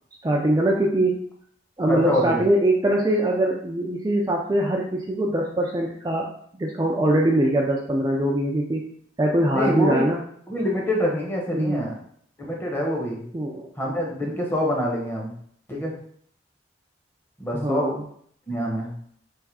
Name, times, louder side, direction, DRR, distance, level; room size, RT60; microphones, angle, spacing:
voice 1, 0.2-1.3 1.8-6.3 6.6-8.8 9.2-10.2 11.5-11.8 13.3-13.7 17.5-18.0, right 1 dB, 20° right, -1 dB, 0.4 m, -22 dB
voice 2, 1.9-2.4 9.5-10.0 10.5-11.9 12.4-13.2 13.8-15.3 15.7-15.9 17.4-17.9 18.5-18.9, equal, 10° left, -1 dB, 0.9 m, -25 dB
3.5 x 3.1 x 4.7 m, 0.63 s
head